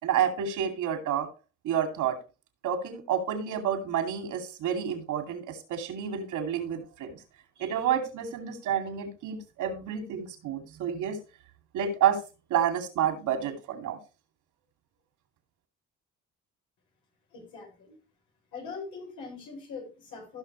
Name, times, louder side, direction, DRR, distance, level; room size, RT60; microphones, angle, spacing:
voice 1, 0.0-1.3 1.6-2.2 2.6-7.2 7.6-11.2 11.7-12.2 12.5-14.0, right 8 dB, 85° right, 5 dB, 2.6 m, -29 dB
voice 2, 17.3-18.0 18.5-20.4, left 5 dB, 85° left, 0 dB, 5.4 m, -42 dB
16.0 x 6.0 x 3.1 m, 0.31 s
cardioid pair, 90°, 30 cm